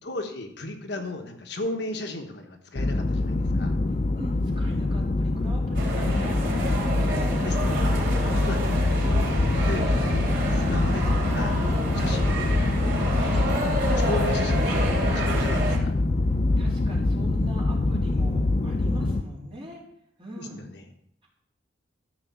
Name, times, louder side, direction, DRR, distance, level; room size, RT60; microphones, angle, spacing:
voice 1, 0.0-3.7 7.4-7.9 8.3-9.0 9.6-10.1 10.5-11.6 11.9-12.6 13.3-15.9 20.4-20.8, left 2 dB, 60° left, 4 dB, 1.3 m, -35 dB
sound 1, 2.8-19.2, left 2 dB, 35° left, 0.5 m, -24 dB
voice 2, 4.2-7.4 8.1-8.6 13.1-13.5 16.6-19.8 20.2-20.6, equal, 30° right, -4 dB, 3.6 m, -41 dB
sound 2, 5.7-15.8, right 1 dB, 55° right, 3.3 m, -30 dB
13.5 x 5.5 x 7.2 m, 0.71 s
head